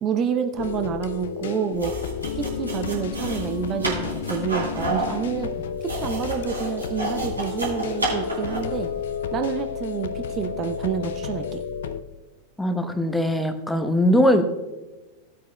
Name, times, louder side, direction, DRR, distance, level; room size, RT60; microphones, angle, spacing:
voice 1, 0.0-1.9 2.4-5.5 5.8-8.9 9.3-11.6, right 8 dB, 30° right, 6 dB, 0.7 m, -28 dB
sound 1, 0.6-12.0, left 7 dB, 60° left, 0.5 m, -31 dB
sound 2, 1.7-8.8, right 2 dB, 80° right, 3.3 m, -30 dB
voice 2, 12.6-14.4, equal, 5° left, 9 dB, 0.9 m, -20 dB
17.5 x 8.4 x 2.2 m, 1.2 s
figure-of-eight pair, 90°, 0 cm